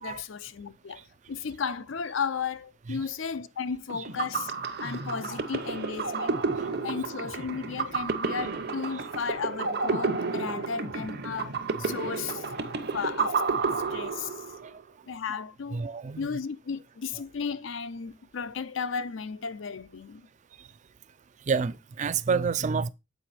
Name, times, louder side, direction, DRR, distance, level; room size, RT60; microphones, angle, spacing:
voice 1, 0.0-1.0 1.3-4.5 4.8-6.4 6.8-12.4 12.9-13.4 13.9-14.4 15.1-15.8 16.2-20.3, left 6 dB, 70° left, 0.6 m, -34 dB
sound 1, 3.9-14.7, right 4 dB, 55° right, 0.9 m, -31 dB
voice 2, 15.7-16.4 21.5-22.9, right 5 dB, 40° right, 0.4 m, -29 dB
7.8 x 4.9 x 4.3 m
head